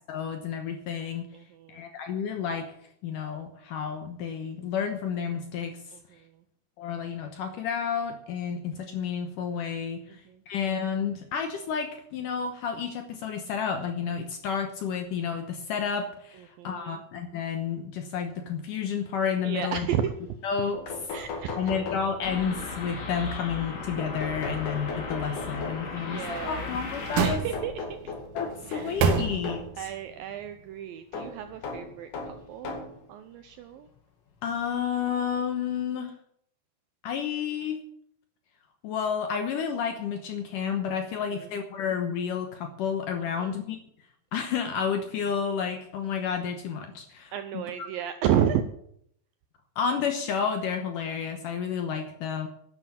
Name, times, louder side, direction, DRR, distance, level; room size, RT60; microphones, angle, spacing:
voice 1, 0.1-1.3 1.7-2.7 3.0-5.8 6.8-19.9 20.4-20.8 21.6-27.4 28.3-29.6 34.4-36.1 37.0-37.8 38.8-43.8 44.3-47.6 49.8-52.5, left 7 dB, 70° left, 5 dB, 2.1 m, -31 dB
voice 2, 1.3-1.9 5.9-6.4 10.1-10.4 16.3-17.0 19.4-20.2 21.1-21.8 25.9-26.7 27.2-28.1 28.7-29.0 29.8-32.8 33.1-33.9 41.3-41.5 43.2-43.5 47.3-48.6, right 9 dB, 80° right, 9 dB, 2.1 m, -32 dB
sound 1, 20.4-20.5 20.7-22.5 24.0-26.0 27.5-29.7 31.1-33.0 33.9-34.0 35.3-35.4 35.7-35.8, left 3 dB, 55° left, 3.5 m, -37 dB
sound 2, 22.2-27.3, left 4 dB, 85° left, 5.2 m, -37 dB
sound 3, 26.3-28.0 28.5-29.8 30.2-30.3, right 6 dB, 65° right, 2.4 m, -29 dB
11.5 x 10.0 x 7.5 m, 0.70 s
omnidirectional pair, 4.9 m